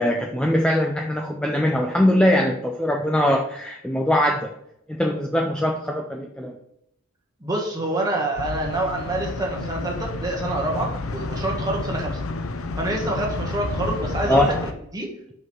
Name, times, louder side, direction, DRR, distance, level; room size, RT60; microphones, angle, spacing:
voice 1, 0.0-4.5 4.9-6.6 14.3-14.6, left 1 dB, 5° left, 1 dB, 0.4 m, -21 dB
voice 2, 7.4-12.2 12.8-14.5 14.9-15.1, right 2 dB, 15° right, -1 dB, 1.5 m, -26 dB
sound 1, 8.3-14.7, left 2 dB, 80° left, 0.7 m, -30 dB
5.8 x 5.4 x 4.6 m, 0.77 s
head